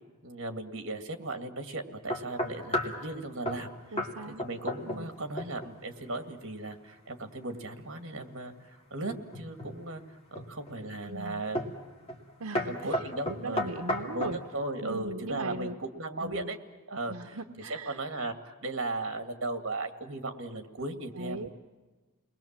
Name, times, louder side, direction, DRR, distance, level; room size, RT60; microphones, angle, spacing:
voice 1, 0.2-3.7 4.3-10.0 10.3-11.6 12.7-13.7 14.0-14.3 14.5-16.6 16.9-17.4 17.7-21.5, right 2 dB, 55° right, 7 dB, 2.1 m, -37 dB
sound 1, 2.1-3.0 3.4-3.7 4.0-4.1 4.4-5.1 5.4-5.7 9.1-9.7 10.3-10.8 11.5-11.8 12.1-12.3 12.5-14.4, left 1 dB, 25° left, 2.6 m, -32 dB
voice 2, 3.9-4.5 4.9-5.1 10.9-11.4 12.4-14.4 14.8-15.8 16.2-16.5 17.1-18.0 21.1-21.5, right 2 dB, 80° right, 6 dB, 0.9 m, -39 dB
29.5 x 21.0 x 7.4 m, 1.3 s
head